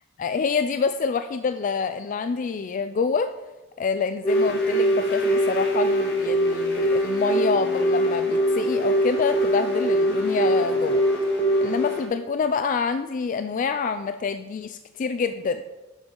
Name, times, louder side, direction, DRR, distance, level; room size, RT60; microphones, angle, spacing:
voice 1, 0.2-3.3 3.8-11.0 11.6-15.6, left 5 dB, 45° left, 9 dB, 0.3 m, -27 dB
Telephone, 4.2-11.7, right 1 dB, 20° left, 1.7 m, -21 dB
sound 1, 4.3-12.1, right 1 dB, 60° left, 1.7 m, -37 dB
10.5 x 7.2 x 3.8 m, 1.1 s
head